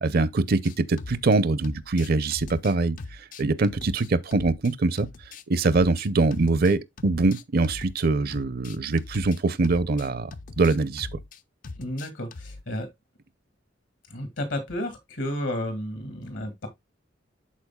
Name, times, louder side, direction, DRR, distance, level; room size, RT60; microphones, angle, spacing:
voice 1, 0.0-3.0 3.4-5.1 5.5-10.3 10.6-11.2, right 3 dB, 50° right, 0.5 m, -23 dB
sound 1, 0.6-1.4 1.6-4.7 5.0-8.1 8.3-12.6, left 3 dB, 45° left, 0.4 m, -41 dB
voice 2, 11.8-12.9 14.1-16.7, left 1 dB, 80° left, 2.1 m, -32 dB
12.0 x 4.3 x 2.2 m
head